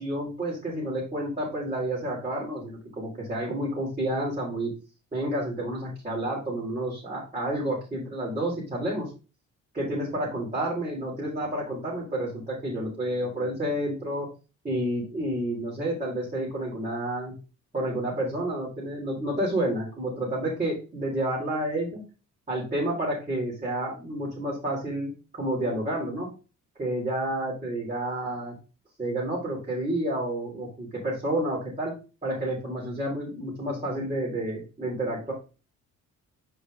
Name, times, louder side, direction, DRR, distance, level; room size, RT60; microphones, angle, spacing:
voice 1, 0.0-4.7 5.1-9.1 9.7-14.3 14.6-17.3 17.7-22.0 22.5-26.3 26.8-28.5 29.0-31.9 32.2-35.3, right 1 dB, 25° right, -7 dB, 3.9 m, -30 dB
5.5 x 4.7 x 5.2 m, 0.32 s
cardioid pair, 90°, 30 cm